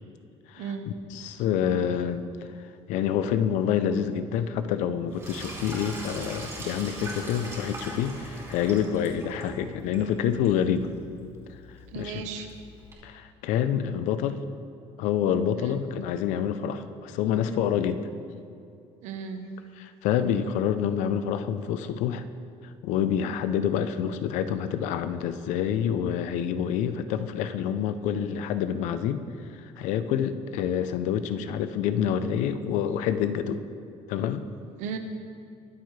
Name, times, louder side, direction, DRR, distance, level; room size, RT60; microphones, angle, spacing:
voice 1, 0.6-1.0 11.9-12.5 15.5-15.8 19.0-19.5 34.8-35.0, right 6 dB, 90° right, 6 dB, 1.2 m, -35 dB
voice 2, 1.1-2.3 2.9-10.9 11.9-12.3 13.0-14.4 15.0-18.0 19.8-22.2 22.8-29.2 29.8-33.6 34.1-34.4, left 8 dB, 85° left, 11 dB, 0.7 m, -27 dB
Sink (filling or washing), 5.1-12.9, right 1 dB, 25° right, 3.0 m, -41 dB
22.5 x 8.0 x 3.3 m, 2.4 s
cardioid pair, 155°, 12 cm